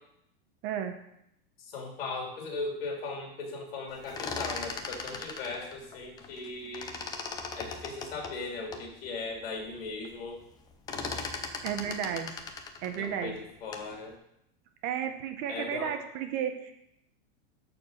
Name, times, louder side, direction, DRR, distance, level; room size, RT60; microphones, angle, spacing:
voice 1, 0.6-0.9 11.6-12.4 12.8-13.4 14.8-16.7, right 8 dB, 35° right, 6 dB, 0.9 m, -33 dB
voice 2, 1.6-7.0 7.5-10.4 13.0-14.2 15.5-16.0, left 3 dB, 75° left, 1 dB, 3.3 m, -38 dB
Barn Door creek, 3.9-6.5 6.7-8.9 9.4-9.5 9.7-10.1 10.4-13.9, left 4 dB, 15° left, 0.6 m, -38 dB
12.0 x 4.6 x 6.6 m, 0.80 s
supercardioid pair, 170°, 30 cm